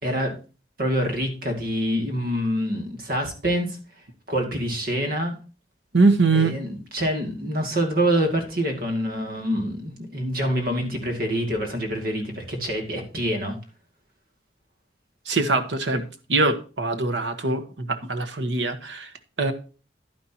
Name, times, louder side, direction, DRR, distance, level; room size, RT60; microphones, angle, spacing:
voice 1, 0.0-0.4 0.8-3.8 4.3-5.4 6.3-13.6 15.9-16.0, equal, 55° right, 2.5 m, -26 dB
voice 2, 5.9-6.6 15.2-16.0 16.3-19.1 19.4-19.5, right 3 dB, 85° right, 1.4 m, -22 dB
10.5 x 10.0 x 2.9 m
head